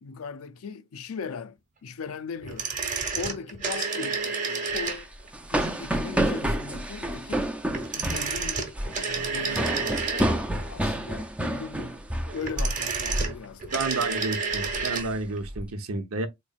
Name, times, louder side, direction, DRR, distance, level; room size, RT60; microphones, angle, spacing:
voice 1, 0.0-2.7 3.1-5.1 5.5-7.5 7.9-8.7 9.0-12.0 12.3-14.1, left 5 dB, 80° left, 0.4 m, -39 dB
sound 1, 2.4-5.3 7.7-10.6 12.3-15.1 15.4-15.5, right 5 dB, 35° right, 1.1 m, -30 dB
sound 2, 4.7-12.8 13.1-13.4 13.7-14.1 14.5-15.6, right 1 dB, 5° right, 0.4 m, -29 dB
voice 2, 13.7-16.3, right 2 dB, 90° right, 0.8 m, -30 dB
4.0 x 3.1 x 2.4 m
head